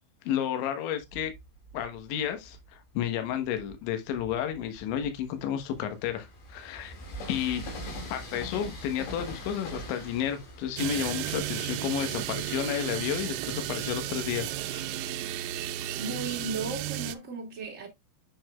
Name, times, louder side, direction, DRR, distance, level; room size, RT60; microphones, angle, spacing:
voice 1, 0.2-1.3 1.7-7.0 7.3-7.6 8.1-14.8, left 9 dB, 75° left, 3.4 m, -32 dB
Train, 1.0-2.7 3.3-13.9, left 1 dB, 55° left, 4.1 m, -43 dB
sound 1, 10.8-17.2, right 13 dB, 85° right, 2.9 m, -34 dB
voice 2, 16.0-17.9, right 4 dB, 25° right, 1.6 m, -35 dB
7.6 x 7.1 x 2.3 m
omnidirectional pair, 5.6 m